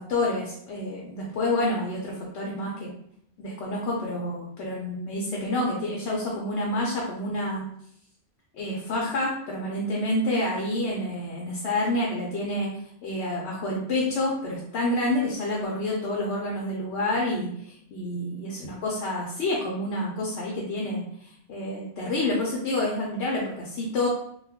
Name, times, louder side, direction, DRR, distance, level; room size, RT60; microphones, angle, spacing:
voice 1, 0.0-2.9 3.4-7.6 8.5-12.7 13.0-24.1, left 1 dB, 75° left, -3 dB, 0.9 m, -28 dB
2.3 x 2.2 x 3.4 m, 0.69 s
omnidirectional pair, 1.2 m